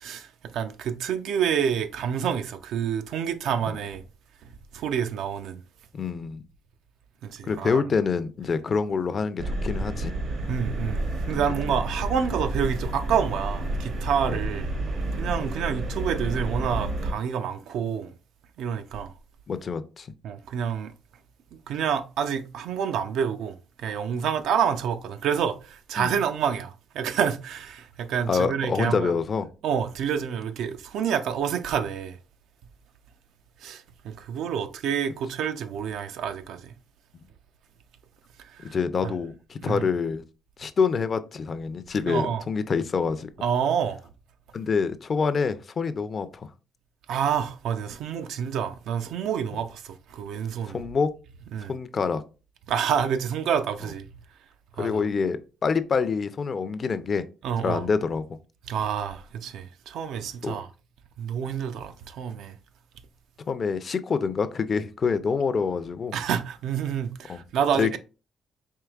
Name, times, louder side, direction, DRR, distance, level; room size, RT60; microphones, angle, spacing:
voice 1, 0.0-4.0 4.4-5.6 7.2-7.8 10.5-11.0 11.3-14.7 15.1-18.1 18.6-19.1 20.2-20.9 21.7-29.1 29.6-32.2 33.6-36.7 38.4-38.8 39.0-39.1 39.7-39.9 42.0-42.4 43.4-44.1 47.1-50.8 51.5-51.7 52.7-54.1 54.8-55.0 57.4-57.9 58.7-60.7 61.2-62.6 66.1-68.0, right 8 dB, 80° right, 0.4 m, -28 dB
voice 2, 5.9-6.4 7.4-10.1 11.4-11.5 14.3-14.4 19.5-20.1 26.0-26.1 28.3-29.5 38.6-40.2 40.6-43.3 44.5-46.5 50.7-51.1 51.7-52.2 54.8-57.2 57.6-58.2 60.4-60.6 63.5-66.1 67.3-67.4 67.8-68.0, left 5 dB, 45° left, 0.4 m, -26 dB
sound 1, 9.4-17.1, right 1 dB, 65° right, 0.9 m, -30 dB
4.6 x 3.1 x 2.3 m
cardioid pair, 90°, 0 cm